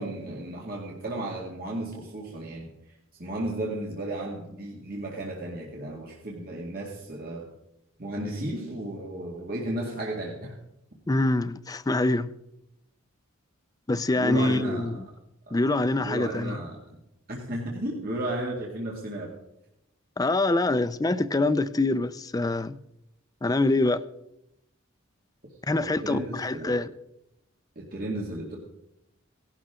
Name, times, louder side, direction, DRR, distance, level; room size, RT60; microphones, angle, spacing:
voice 1, 0.0-2.7 3.2-7.5 8.0-10.6 14.2-15.0 15.5-15.6 16.0-16.8 17.3-19.3 25.7-26.8 27.8-28.6, right 1 dB, 45° right, 2.2 m, -34 dB
voice 2, 11.1-12.3 13.9-15.0 15.5-16.6 20.2-22.8 23.4-24.0 25.7-26.9, left 2 dB, 20° left, 0.4 m, -25 dB
17.5 x 12.0 x 3.7 m
head